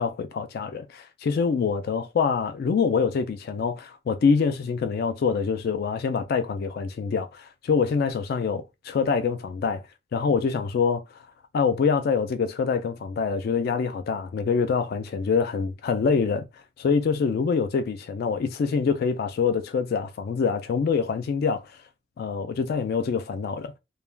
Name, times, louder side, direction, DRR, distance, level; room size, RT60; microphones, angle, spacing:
voice 1, 0.0-9.8 10.1-11.2 11.5-16.5 16.8-21.7 22.2-23.7, left 5 dB, 55° left, 0.3 m, -25 dB
2.3 x 2.1 x 3.1 m
head